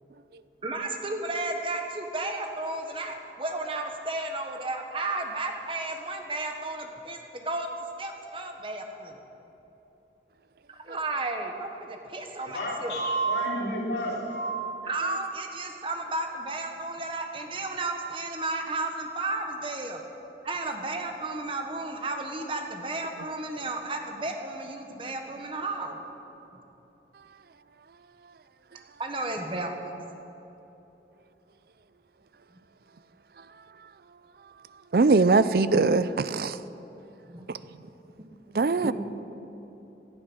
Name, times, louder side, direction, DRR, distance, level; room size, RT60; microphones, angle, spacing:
voice 1, 0.6-7.7 8.0-9.2 10.7-13.0 14.9-20.0 20.4-26.0 29.0-29.9 37.3-37.5 38.5-38.9, right 2 dB, 30° right, 1.3 m, -33 dB
voice 2, 12.5-14.5, right 2 dB, 85° left, 3.4 m, -29 dB
voice 3, 34.9-36.6 37.5-37.6 38.5-38.9, right 3 dB, 55° right, 0.5 m, -22 dB
17.0 x 11.5 x 6.2 m
head